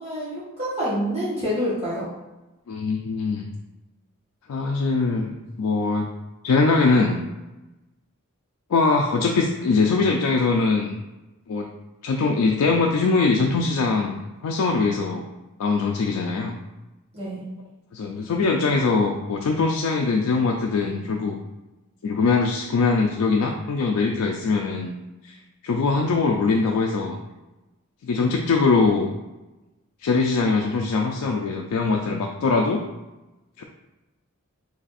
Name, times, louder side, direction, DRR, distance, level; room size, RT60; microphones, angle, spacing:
voice 1, 0.0-2.1 17.1-17.5, equal, 25° right, -9 dB, 1.0 m, -27 dB
voice 2, 2.7-3.5 4.5-6.1 6.4-7.2 8.7-11.0 11.5-11.7 12.0-15.3 15.6-16.6 17.9-21.4 22.0-24.9 25.2-25.4 25.6-27.2 28.0-29.1 30.0-32.9 33.6-33.7, left 4 dB, 90° left, 1 dB, 0.4 m, -22 dB
3.3 x 2.5 x 4.0 m, 1.0 s
head